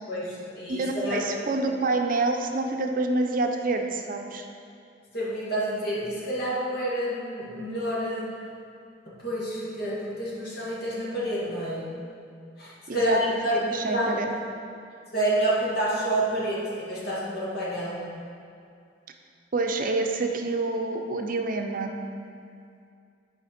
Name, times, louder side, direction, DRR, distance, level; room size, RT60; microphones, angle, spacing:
voice 1, 0.1-1.4 5.1-8.4 9.2-11.8 12.6-14.2 15.1-18.0, right 1 dB, 60° left, -6 dB, 2.1 m, -28 dB
voice 2, 0.7-4.5 12.9-13.4 13.6-14.3 19.5-21.9, right 3 dB, 50° right, 4 dB, 0.6 m, -27 dB
8.7 x 5.0 x 5.1 m, 2.4 s
head